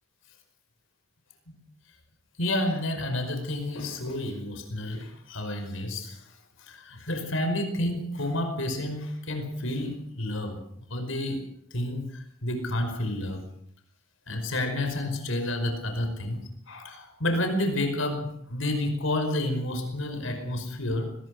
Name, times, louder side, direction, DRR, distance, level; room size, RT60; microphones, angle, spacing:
voice 1, 2.4-6.2 6.6-11.4 11.7-13.4 14.3-21.2, left 1 dB, 80° left, 6 dB, 5.1 m, -30 dB
22.0 x 20.5 x 6.6 m, 0.66 s
head